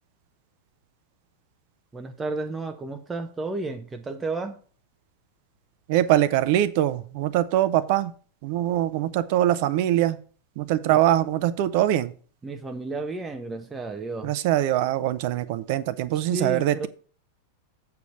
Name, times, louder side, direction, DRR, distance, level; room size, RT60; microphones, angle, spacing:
voice 1, 1.9-4.6 10.9-11.0 12.4-14.4 16.1-16.9, right 3 dB, 15° right, 5 dB, 0.7 m, -32 dB
voice 2, 5.9-8.1 8.4-10.2 10.6-12.1 14.2-16.9, right 13 dB, 50° right, 15 dB, 0.7 m, -23 dB
8.1 x 5.1 x 5.8 m, 0.41 s
figure-of-eight pair, 90°, 0 cm